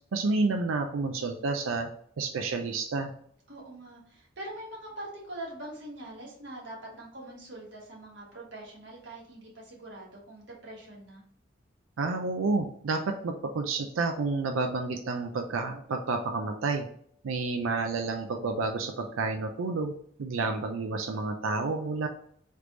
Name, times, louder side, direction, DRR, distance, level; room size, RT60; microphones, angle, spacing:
voice 1, 0.1-1.9 2.2-3.1 12.0-16.9 17.2-19.9 20.2-22.1, right 3 dB, 80° right, 4 dB, 0.4 m, -30 dB
voice 2, 3.5-11.2, right 1 dB, 60° right, -3 dB, 1.5 m, -43 dB
3.3 x 3.2 x 3.8 m, 0.63 s
head